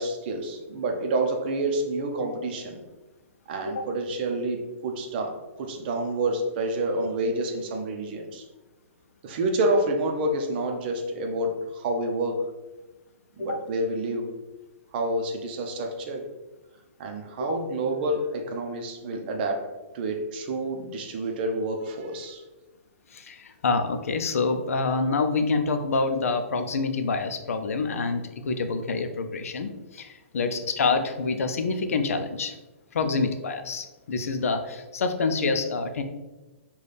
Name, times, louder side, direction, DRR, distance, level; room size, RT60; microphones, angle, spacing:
voice 1, 0.0-2.8 3.5-8.4 9.2-12.4 13.4-14.3 14.9-16.2 17.0-22.4 30.5-30.6 33.0-33.1, right 2 dB, 45° right, 3 dB, 0.6 m, -28 dB
voice 2, 23.1-32.5 32.9-36.0, left 4 dB, 85° left, 7 dB, 0.5 m, -27 dB
4.0 x 2.3 x 3.3 m, 1.1 s
hypercardioid pair, 155°, 8 cm